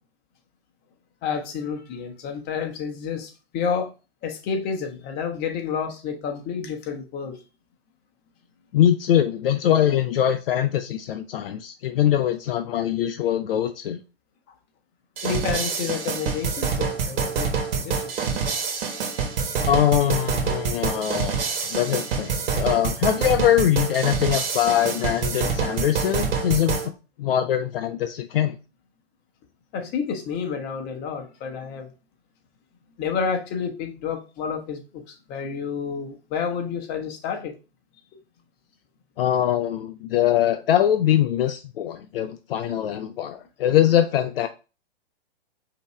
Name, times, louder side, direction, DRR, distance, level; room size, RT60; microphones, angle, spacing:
voice 1, 1.2-3.9 4.2-7.4 15.2-18.5 29.7-31.9 33.0-37.6, left 6 dB, 30° left, 1.0 m, -30 dB
voice 2, 8.7-14.0 19.6-26.9 27.2-28.6 39.2-44.5, left 11 dB, 65° left, 0.5 m, -22 dB
sound 1, 15.2-26.9, right 6 dB, 65° right, 1.3 m, -26 dB
5.1 x 2.8 x 3.2 m
hypercardioid pair, 120°, 31 cm